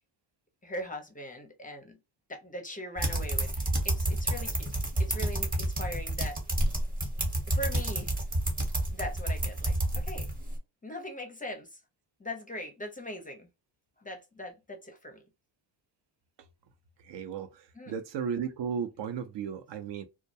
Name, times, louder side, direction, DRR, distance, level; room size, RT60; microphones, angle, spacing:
voice 1, 0.6-2.0 2.3-4.7 5.0-6.4 7.5-8.1 8.9-10.3 10.8-11.8 12.2-13.5 14.0-15.2 17.8-17.9, left 1 dB, 15° left, 0.5 m, -40 dB
sound 1, 3.0-10.6, right 1 dB, 15° right, 0.8 m, -29 dB
voice 2, 17.0-20.0, right 7 dB, 60° right, 0.6 m, -35 dB
2.2 x 2.1 x 2.6 m
cardioid pair, 100°, 49 cm